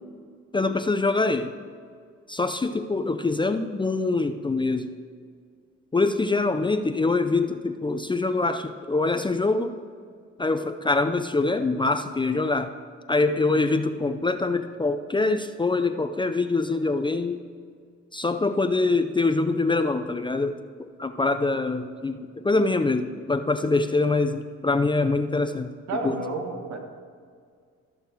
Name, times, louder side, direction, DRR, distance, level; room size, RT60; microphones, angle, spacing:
voice 1, 0.5-1.5 2.3-4.9 5.9-9.8 10.4-12.7 13.1-17.4 18.1-25.7 26.0-26.2, left 3 dB, 15° left, 8 dB, 0.5 m, -24 dB
voice 2, 25.9-26.8, right 3 dB, 70° right, 3 dB, 1.7 m, -30 dB
14.0 x 6.7 x 4.6 m, 2.1 s
cardioid pair, 90°, 29 cm